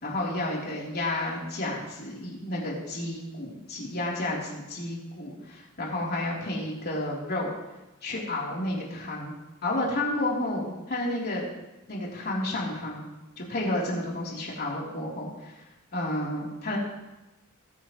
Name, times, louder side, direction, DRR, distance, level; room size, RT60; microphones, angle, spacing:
voice 1, 0.0-7.5 8.0-9.3 9.6-11.4 11.9-13.0 13.4-15.5 15.9-16.8, left 1 dB, 45° left, -4 dB, 3.4 m, -31 dB
21.5 x 9.2 x 3.1 m, 1.0 s
head